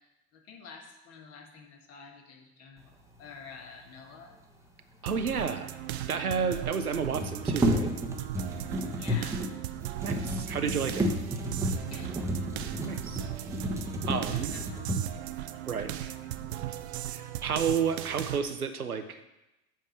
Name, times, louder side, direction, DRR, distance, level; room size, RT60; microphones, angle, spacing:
voice 1, 0.3-2.9 3.2-4.4 9.0-9.4 11.7-12.1 14.3-15.2, left 5 dB, 35° left, 2 dB, 1.6 m, -49 dB
voice 2, 5.0-5.7 6.1-7.9 10.0-11.1 12.8-13.3 14.1-14.6 15.7-16.1 17.1-19.2, right 6 dB, 80° right, 8 dB, 0.8 m, -31 dB
sound 1, 5.1-18.4, right 13 dB, 50° right, 0.6 m, -37 dB
sound 2, 5.5-5.6 5.8-5.9 6.9-15.3 16.0-16.1 16.6-17.2 17.5-18.1, equal, 5° right, 1.0 m, -32 dB
7.5 x 5.0 x 6.9 m, 0.95 s
figure-of-eight pair, 85°, 43 cm